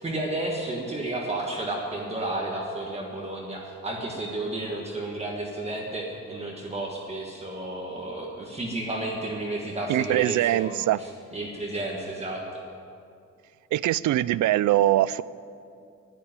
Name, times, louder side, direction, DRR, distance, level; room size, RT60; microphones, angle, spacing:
voice 1, 0.0-12.4, right 2 dB, 20° right, -2 dB, 1.4 m, -32 dB
voice 2, 9.9-11.0 13.7-15.2, right 14 dB, 85° right, 19 dB, 0.5 m, -22 dB
12.0 x 10.5 x 9.7 m, 2.5 s
wide cardioid pair, 170°, 29 cm